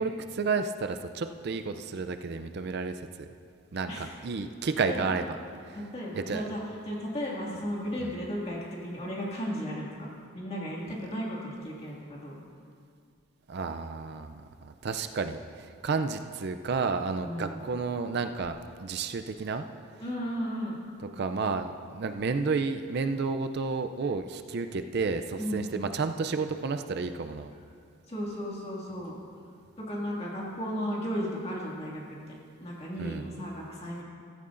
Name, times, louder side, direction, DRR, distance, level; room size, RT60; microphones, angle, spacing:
voice 1, 0.0-3.3 3.7-5.4 5.7-5.8 6.1-6.5 8.0-8.1 13.5-19.7 21.1-27.5 33.0-33.2, right 4 dB, 50° right, 8 dB, 0.4 m, -31 dB
voice 2, 5.7-6.6 6.9-12.4 17.2-17.6 20.0-20.8 25.4-25.9 28.1-29.2 29.8-32.0 32.3-34.0, equal, 30° left, -4 dB, 2.1 m, -35 dB
15.0 x 14.0 x 2.6 m, 2.2 s
head